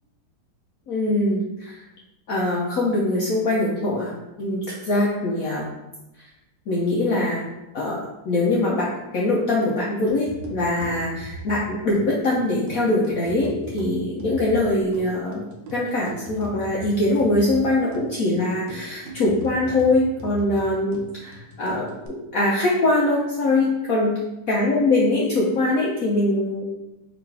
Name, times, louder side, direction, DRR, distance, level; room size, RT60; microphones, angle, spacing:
voice 1, 0.9-1.8 2.3-4.1 4.4-5.7 6.7-7.4 7.7-8.9 9.1-15.5 15.7-24.1 24.5-26.7, left 2 dB, 65° left, -4 dB, 0.9 m, -22 dB
sound 1, 10.1-22.1, right 1 dB, 75° right, 1.4 m, -40 dB
3.8 x 3.0 x 4.7 m, 0.95 s
omnidirectional pair, 2.1 m